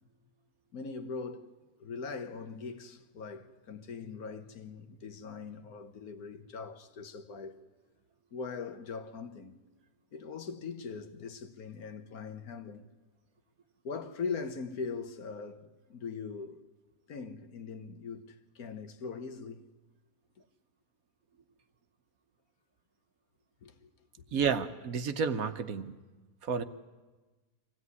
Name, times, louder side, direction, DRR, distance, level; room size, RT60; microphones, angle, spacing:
voice 1, 0.7-1.5 1.8-7.6 8.3-9.6 10.1-12.9 13.8-16.6 17.1-19.6 23.6-23.9 24.2-24.4, left 5 dB, 65° left, 1.6 m, -41 dB
voice 2, 24.3-25.9 26.4-26.6, right 6 dB, 65° right, 1.3 m, -31 dB
24.5 x 16.0 x 9.6 m
omnidirectional pair, 1.7 m